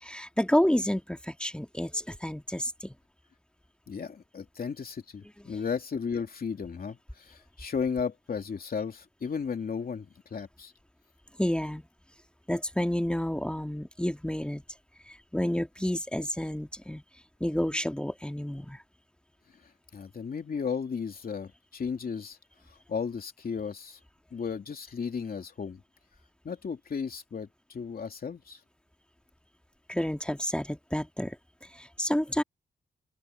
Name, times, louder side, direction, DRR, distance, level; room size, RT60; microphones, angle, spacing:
voice 1, 0.0-2.9 11.4-11.8 12.5-14.6 15.1-17.0 17.4-18.8 29.9-31.4 31.6-32.4, equal, 5° left, 2.0 m, -30 dB
voice 2, 3.9-10.7 19.9-22.4 22.7-24.0 24.3-25.8 26.4-28.6, left 6 dB, 55° left, 2.9 m, -34 dB
open air
cardioid pair, 70°, 18 cm